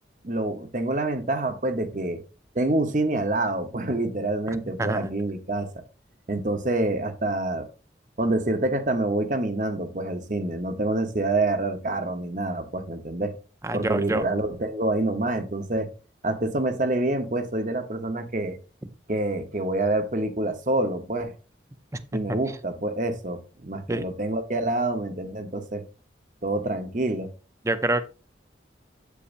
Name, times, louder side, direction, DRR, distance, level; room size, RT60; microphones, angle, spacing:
voice 1, 0.2-2.2 2.5-5.7 6.3-7.7 8.2-13.3 13.7-15.9 16.2-18.6 19.1-21.3 22.1-25.8 26.4-27.3, right 2 dB, 45° right, 8 dB, 1.0 m, -27 dB
voice 2, 4.8-5.1 13.6-14.2 18.8-18.9 21.9-22.0 23.9-24.0 27.6-28.0, right 2 dB, 15° right, 11 dB, 0.6 m, -26 dB
8.4 x 8.4 x 2.6 m, 0.34 s
head